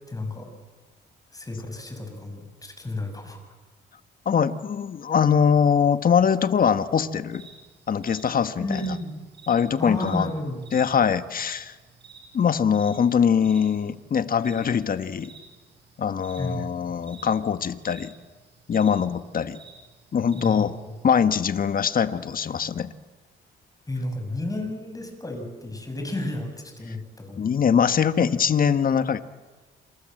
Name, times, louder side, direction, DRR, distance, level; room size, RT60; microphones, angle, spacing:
voice 1, 0.1-0.5 1.3-3.4 8.6-9.2 9.8-10.6 16.4-16.6 20.3-20.9 23.9-27.4, left 1 dB, 15° left, 5 dB, 7.0 m, -32 dB
voice 2, 4.2-7.5 7.9-8.8 9.5-10.3 10.7-11.7 12.3-15.3 16.0-18.1 18.7-19.6 20.1-22.9 26.9-27.0 27.4-29.2, left 7 dB, 45° left, 11 dB, 1.5 m, -22 dB
sound 1, 7.3-21.0, right 5 dB, 60° right, 7.0 m, -50 dB
27.5 x 27.0 x 7.9 m, 1.3 s
cardioid pair, 90°, 20 cm